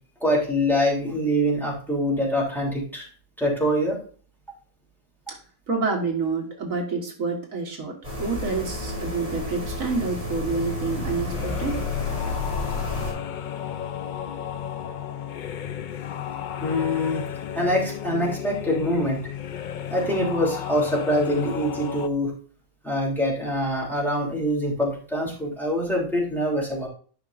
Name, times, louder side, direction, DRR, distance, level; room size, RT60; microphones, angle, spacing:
voice 1, 0.2-3.0 3.4-4.0 16.6-17.2 17.5-19.2 19.9-22.3 22.8-26.9, equal, ahead, -4 dB, 3.1 m, -24 dB
voice 2, 5.7-11.8, right 4 dB, 75° right, 2 dB, 1.9 m, -28 dB
sound 1, 8.0-13.1, left 2 dB, 30° right, 4.4 m, -31 dB
sound 2, 9.8-22.1, left 9 dB, 85° left, 0.4 m, -34 dB
11.0 x 5.8 x 2.5 m, 0.40 s
omnidirectional pair, 1.4 m